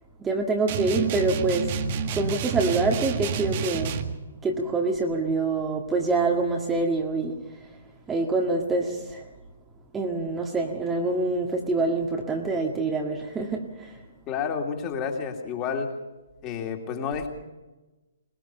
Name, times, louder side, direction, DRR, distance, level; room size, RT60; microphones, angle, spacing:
voice 1, 0.2-1.7 2.1-4.0 4.4-7.4 8.1-9.2 9.9-13.9, right 3 dB, 10° right, 1 dB, 1.8 m, -26 dB
sound 1, 0.7-4.2, right 5 dB, 35° right, 1.6 m, -29 dB
voice 2, 14.3-15.9 16.4-17.3, left 6 dB, 25° left, 3 dB, 2.9 m, -30 dB
22.0 x 21.5 x 5.7 m, 1.1 s
figure-of-eight pair, 125°, 0 cm